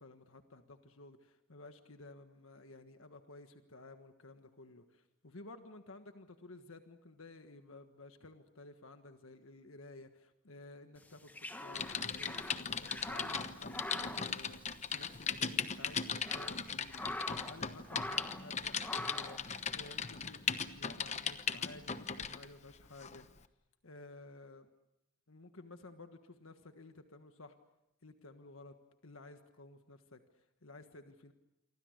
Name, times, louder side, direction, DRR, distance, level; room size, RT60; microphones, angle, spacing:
voice 1, 0.0-17.0 17.4-23.3 23.8-24.7 25.3-27.6 28.0-28.8 29.0-31.3, left 2 dB, 80° left, 7 dB, 1.5 m, -54 dB
sound 1, 11.0-15.1 15.4-15.5 16.0-17.6 17.9-18.5 18.8-19.5, left 1 dB, 10° left, 1.5 m, -44 dB
Typing, 11.7-22.5 23.0-23.2, left 6 dB, 35° left, 1.0 m, -38 dB
28.5 x 24.5 x 6.6 m, 0.87 s
head